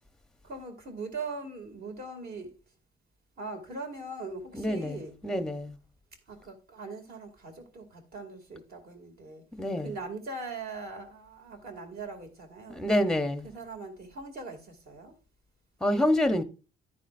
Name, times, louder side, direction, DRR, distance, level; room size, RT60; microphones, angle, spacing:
voice 1, 0.4-2.5 3.4-5.2 6.3-9.4 9.8-12.9 13.4-15.1, right 3 dB, 55° right, 2.4 m, -41 dB
voice 2, 4.5-5.0 5.2-5.7 9.6-9.9 12.8-13.5 15.8-16.4, left 1 dB, 5° left, 0.7 m, -26 dB
10.5 x 9.5 x 2.5 m
cardioid pair, 155°, 19 cm